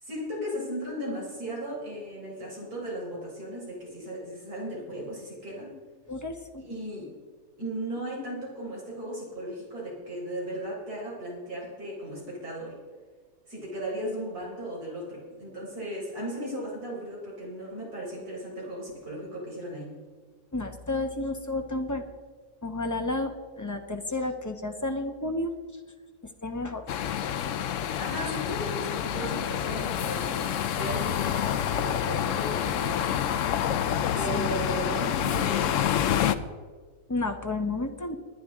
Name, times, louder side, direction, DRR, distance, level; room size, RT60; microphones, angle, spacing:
voice 1, 0.0-5.8 6.6-7.1 7.6-12.8 13.5-19.9 27.7-33.2 34.2-36.1, equal, 65° right, -4 dB, 4.5 m, -36 dB
voice 2, 6.1-6.6 20.5-22.0 22.6-25.5 26.4-26.8 34.3-34.5 37.1-38.2, left 2 dB, 20° left, 4 dB, 0.5 m, -31 dB
sound 1, 26.9-36.4, left 9 dB, 65° left, 0.8 m, -28 dB
20.5 x 10.0 x 3.6 m, 1.5 s
omnidirectional pair, 1.7 m